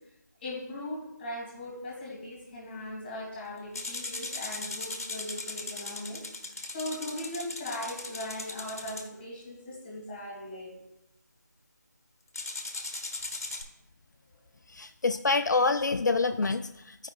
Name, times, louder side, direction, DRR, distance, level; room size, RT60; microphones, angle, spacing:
voice 1, 0.4-6.2 6.7-10.9, left 1 dB, 10° left, -3 dB, 2.3 m, -39 dB
sound 1, 3.7-9.1 12.3-13.6, left 3 dB, 50° left, 0.9 m, -38 dB
voice 2, 14.7-17.1, left 3 dB, 70° left, 8 dB, 0.4 m, -27 dB
14.0 x 4.9 x 2.3 m, 0.87 s
figure-of-eight pair, 165°, 10 cm